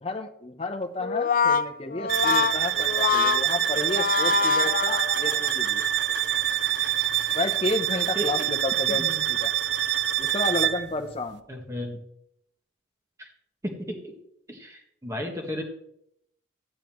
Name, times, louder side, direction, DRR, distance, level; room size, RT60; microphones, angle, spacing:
voice 1, 0.0-5.8 7.3-9.5 10.2-11.4, left 2 dB, 30° left, 5 dB, 0.8 m, -31 dB
Brass instrument, 1.0-5.5, left 6 dB, 45° left, 0.4 m, -25 dB
sound 1, 2.1-10.9, right 12 dB, 65° right, 0.5 m, -25 dB
voice 2, 8.1-8.5 8.9-9.2 11.5-12.0 13.2-13.3 13.6-14.2 14.5-15.6, equal, 15° right, 2 dB, 1.5 m, -34 dB
14.0 x 9.1 x 3.1 m, 0.75 s
head